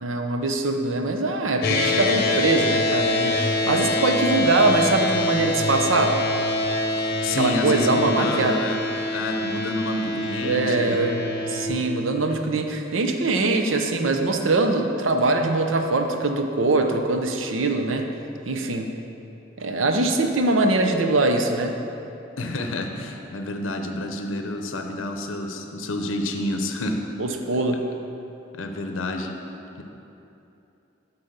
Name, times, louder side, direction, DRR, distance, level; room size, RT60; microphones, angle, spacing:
voice 1, 0.0-6.2 7.4-8.6 10.4-11.2 11.5-18.1 18.5-18.9 19.6-21.8 27.2-27.8, right 2 dB, 85° right, 5 dB, 0.7 m, -22 dB
sound 1, 1.6-11.7, left 2 dB, 55° left, 0.8 m, -25 dB
voice 2, 7.0-8.8 9.1-10.9 22.4-27.0 28.5-29.4 29.8-29.9, left 1 dB, 85° left, 4 dB, 0.6 m, -29 dB
8.6 x 4.1 x 6.6 m, 2.9 s
head